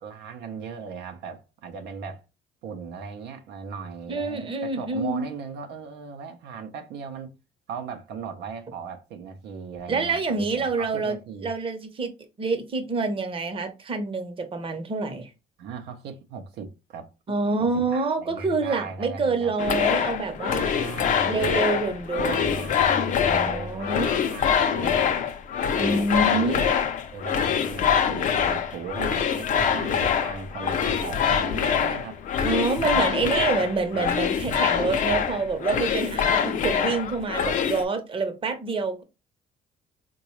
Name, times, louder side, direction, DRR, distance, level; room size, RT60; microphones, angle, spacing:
voice 1, 0.0-2.3 2.6-7.4 7.7-11.5 15.6-17.1 17.6-19.5 20.7-21.9 22.3-25.1 25.7-26.8 27.1-32.2 32.8-33.1, right 5 dB, 80° right, 0.6 m, -37 dB
voice 2, 4.1-5.3 9.9-11.2 11.4-12.1 12.4-15.3 17.3-20.8 21.2-22.8 23.3-24.1 25.8-26.6 32.4-39.0, right 3 dB, 30° right, 0.8 m, -27 dB
sound 1, 19.6-37.8, left 8 dB, 50° left, 0.5 m, -24 dB
3.8 x 2.2 x 3.0 m
cardioid pair, 110°, 17 cm